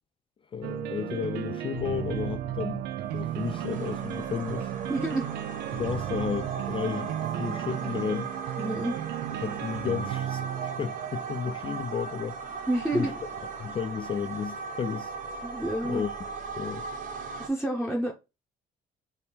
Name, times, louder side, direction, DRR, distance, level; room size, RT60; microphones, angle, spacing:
voice 1, 0.5-2.8 3.1-4.7 5.7-8.3 9.4-12.4 12.9-13.1 13.6-15.1 15.8-16.1 16.6-16.9, left 7 dB, 30° left, 0.4 m, -33 dB
sound 1, 0.6-13.5, right 11 dB, 75° right, 0.4 m, -35 dB
sound 2, 3.0-17.5, right 5 dB, 50° right, 0.9 m, -38 dB
voice 2, 4.9-5.3 8.6-9.0 12.7-13.1 15.4-16.0 17.4-18.1, right 1 dB, ahead, 0.9 m, -28 dB
3.4 x 2.8 x 4.3 m
cardioid pair, 110°, 17 cm